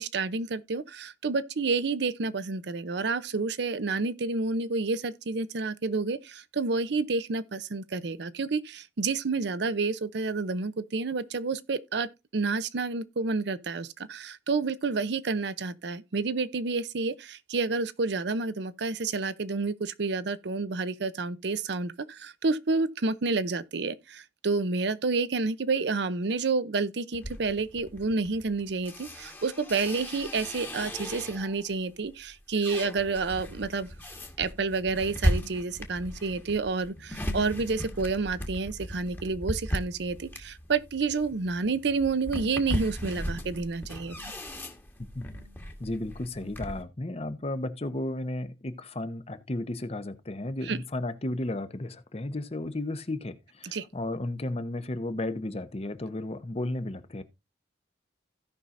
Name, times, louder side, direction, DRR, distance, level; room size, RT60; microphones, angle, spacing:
voice 1, 0.0-33.9 34.4-44.2 50.6-50.8 53.7-53.8, right 4 dB, 65° right, 0.6 m, -29 dB
sound 1, 27.1-31.6 32.1-46.8, equal, 10° left, 1.3 m, -36 dB
voice 2, 45.8-57.2, left 1 dB, 35° left, 0.8 m, -34 dB
16.5 x 5.5 x 2.5 m
head